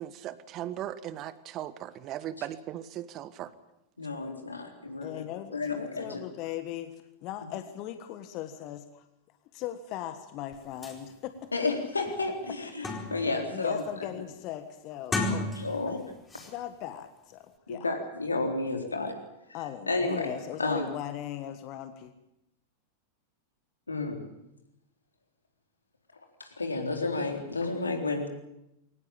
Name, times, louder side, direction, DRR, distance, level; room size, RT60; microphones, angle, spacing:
voice 1, 0.0-3.5, right 12 dB, 35° right, 15 dB, 1.3 m, -38 dB
voice 2, 4.0-5.2 5.5-6.2 11.5-14.1 15.6-16.0 17.7-19.2 19.9-20.3 20.6-20.9 23.9-24.3 26.4-28.3, left 3 dB, 80° left, 3 dB, 3.9 m, -31 dB
voice 3, 5.0-9.0 9.5-11.5 13.5-15.5 15.9-16.0 16.4-17.9 19.5-22.1, left 12 dB, 40° left, 10 dB, 1.5 m, -39 dB
sound 1, 10.5-10.6 10.8-11.0 11.5-11.6 12.0-13.4 13.8-14.1 14.9-15.9 16.3-16.5, left 2 dB, 15° left, 4.5 m, -34 dB
22.5 x 19.0 x 8.8 m, 0.85 s
figure-of-eight pair, 90°, 0 cm